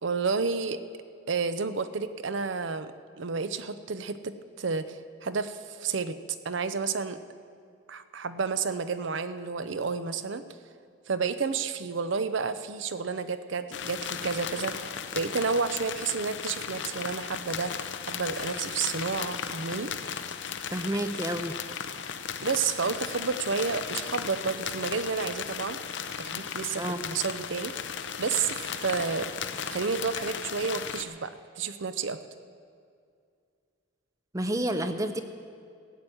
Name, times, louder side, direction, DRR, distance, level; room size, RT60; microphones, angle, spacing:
voice 1, 0.0-0.8 1.3-2.9 3.2-6.2 6.4-7.2 7.9-10.4 11.1-17.7 18.1-19.9 22.4-25.8 26.2-27.7 28.2-29.3 29.7-31.3 31.6-32.2, right 5 dB, 65° right, 11 dB, 0.6 m, -30 dB
sound 1, 13.7-31.0, left 7 dB, 60° left, 0.7 m, -36 dB
voice 2, 20.7-21.6 26.8-27.0 34.3-35.2, right 1 dB, 15° right, 9 dB, 0.6 m, -29 dB
15.0 x 8.8 x 7.8 m, 2.3 s
head